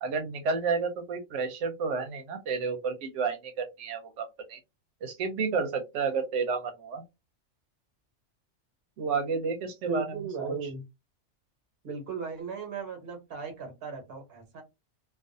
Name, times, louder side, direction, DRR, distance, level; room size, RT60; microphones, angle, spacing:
voice 1, 0.0-4.6 5.0-7.0 9.0-10.0 10.4-10.5, right 5 dB, 85° right, 5 dB, 0.9 m, -31 dB
voice 2, 9.9-10.8 11.8-14.6, right 4 dB, 55° right, 4 dB, 1.1 m, -37 dB
2.4 x 2.3 x 2.5 m, 0.23 s
omnidirectional pair, 1.2 m